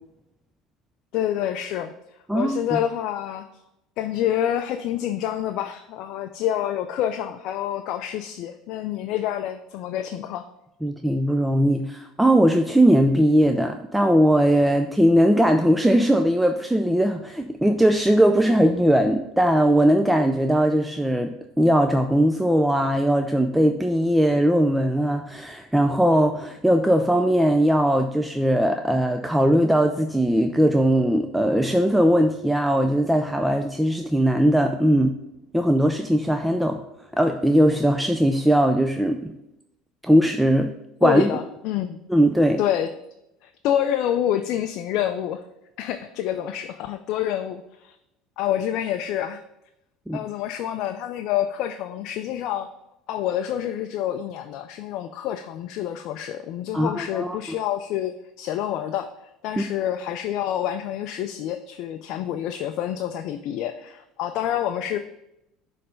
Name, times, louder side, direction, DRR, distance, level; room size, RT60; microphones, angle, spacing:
voice 1, 1.1-1.9 2.3-3.4 4.0-10.5 41.0-42.0 42.6-42.9 43.4-45.4 45.8-48.0 48.4-49.4 50.1-52.7 53.1-59.1 59.4-65.0, left 11 dB, 65° left, 7 dB, 0.4 m, -27 dB
voice 2, 10.8-21.3 21.6-35.1 35.5-36.8 37.2-39.2 40.0-40.7 41.0-41.3 42.1-42.6 50.1-50.2 56.7-57.4 59.6-59.7, equal, 5° right, 5 dB, 0.4 m, -19 dB
6.7 x 3.3 x 5.2 m, 0.86 s
supercardioid pair, 90°, 0 cm